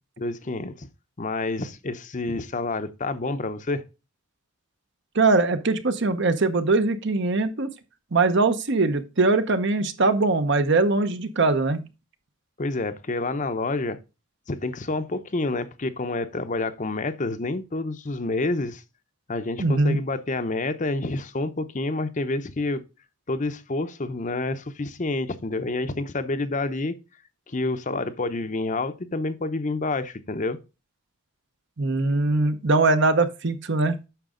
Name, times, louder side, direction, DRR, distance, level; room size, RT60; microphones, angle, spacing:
voice 1, 0.2-0.9 1.2-3.8 12.6-14.0 14.5-18.8 19.3-22.8 23.3-26.9 27.5-30.6, left 2 dB, 35° left, 0.7 m, -28 dB
voice 2, 5.1-7.7 8.1-11.8 19.6-20.0 31.8-34.0, right 3 dB, 55° right, 0.9 m, -21 dB
9.1 x 6.1 x 3.8 m
head